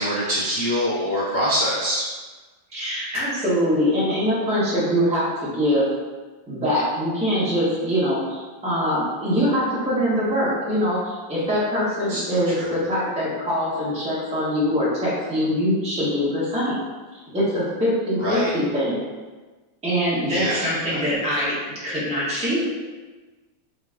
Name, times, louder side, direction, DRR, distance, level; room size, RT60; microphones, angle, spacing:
voice 1, 0.0-2.0 12.1-12.7 18.2-18.5 20.3-20.6, equal, 25° right, -14 dB, 1.2 m, -24 dB
voice 2, 2.7-5.9 6.5-16.8 17.3-19.0 19.8-21.5 21.8-22.6, equal, 5° right, -9 dB, 0.5 m, -23 dB
3.7 x 3.3 x 2.4 m, 1.3 s
omnidirectional pair, 2.1 m